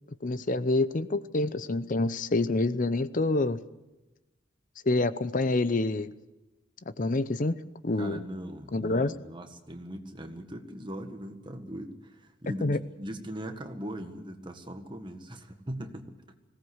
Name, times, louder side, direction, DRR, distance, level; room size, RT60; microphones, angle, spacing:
voice 1, 0.2-3.6 4.9-6.1 7.0-7.6 7.8-8.2 8.7-9.1 12.6-12.8, left 2 dB, 45° left, 14 dB, 0.7 m, -27 dB
voice 2, 8.0-16.2, equal, 25° right, 6 dB, 1.7 m, -40 dB
20.5 x 18.0 x 8.0 m, 1.0 s
head